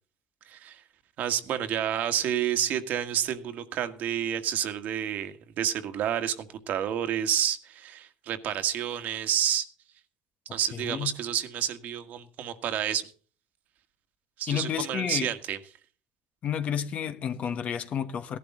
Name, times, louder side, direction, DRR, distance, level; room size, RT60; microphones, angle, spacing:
voice 1, 0.5-0.8 1.2-9.7 10.5-13.1 14.4-15.6, right 10 dB, 55° right, 1.7 m, -29 dB
voice 2, 10.7-11.1 14.5-15.3 16.4-18.4, left 8 dB, 45° left, 1.4 m, -31 dB
17.5 x 11.5 x 3.8 m
cardioid pair, 115°, 3 cm